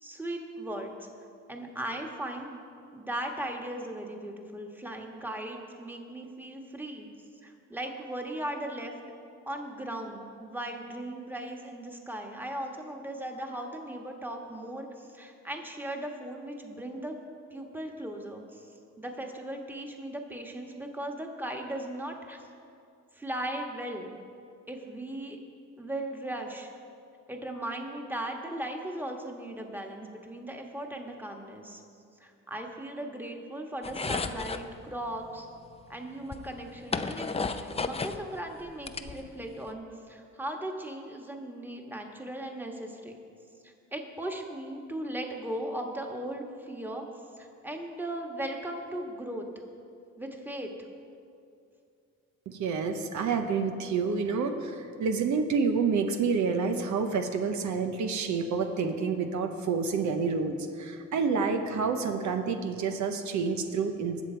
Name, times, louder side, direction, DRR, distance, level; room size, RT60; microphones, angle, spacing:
voice 1, 0.0-1.1 1.5-2.6 2.9-7.1 7.4-8.9 9.5-17.1 17.5-18.7 19.0-22.4 23.1-24.1 24.7-25.4 25.8-26.7 27.3-31.8 32.2-35.5 35.9-43.2 43.6-47.1 47.4-49.5 50.2-50.7, right 1 dB, 5° right, 2 dB, 1.5 m, -37 dB
sound 1, 33.8-34.7 35.8-35.9 36.3-38.2 38.6-39.6, left 4 dB, 20° left, 0.5 m, -33 dB
voice 2, 52.5-64.2, right 5 dB, 70° right, 6 dB, 1.0 m, -28 dB
20.0 x 7.2 x 4.5 m, 2.5 s
cardioid pair, 90°, 30 cm